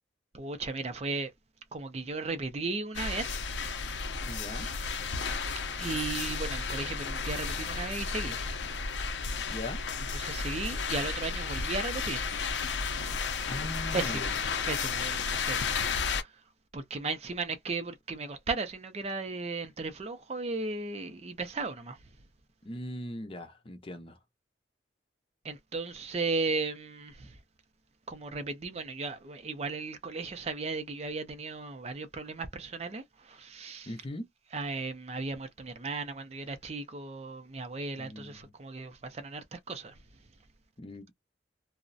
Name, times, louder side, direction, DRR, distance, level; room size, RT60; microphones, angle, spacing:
voice 1, 0.3-1.3 1.7-3.4 4.6-4.7 5.8-8.4 10.1-12.3 13.9-14.4 14.7-15.6 15.9-16.3 16.7-22.0 25.4-27.3 28.1-33.9 34.5-39.9, right 3 dB, 35° right, 0.4 m, -36 dB
sound 1, 2.9-16.2, left 5 dB, 70° left, 0.5 m, -33 dB
voice 2, 4.2-4.7 9.5-9.8 13.5-14.4 22.6-24.2 33.9-34.3 38.0-38.5 40.8-41.1, left 1 dB, 30° left, 0.5 m, -40 dB
2.4 x 2.0 x 2.5 m
head